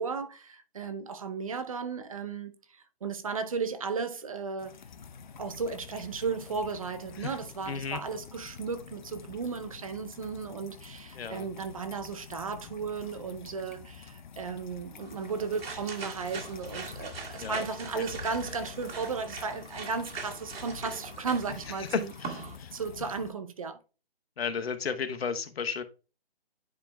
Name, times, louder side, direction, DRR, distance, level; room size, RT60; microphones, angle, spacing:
voice 1, 0.0-4.8 5.4-22.1 22.7-23.8, right 5 dB, 35° right, 0.6 m, -35 dB
sound 1, 4.6-23.3, left 6 dB, 45° left, 0.5 m, -47 dB
voice 2, 7.7-8.0 11.2-11.5 17.4-17.6 17.9-18.0 21.9-22.7 24.4-25.8, left 6 dB, 70° left, 0.9 m, -33 dB
sound 2, 15.0-22.6, right 4 dB, 65° right, 2.0 m, -42 dB
9.9 x 4.8 x 2.2 m
hypercardioid pair, 155°, 32 cm